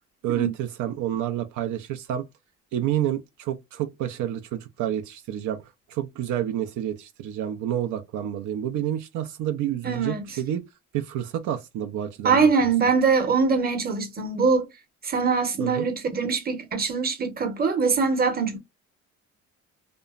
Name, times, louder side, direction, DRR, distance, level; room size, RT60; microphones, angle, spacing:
voice 1, 0.2-2.2 2.7-5.6 5.9-10.6 10.9-12.4 15.6-15.9, right 11 dB, 80° right, 0.5 m, -29 dB
voice 2, 9.8-10.3 12.2-14.7 15.0-18.6, right 5 dB, 30° right, 0.8 m, -23 dB
2.9 x 2.0 x 2.3 m
cardioid pair, 105°, 30 cm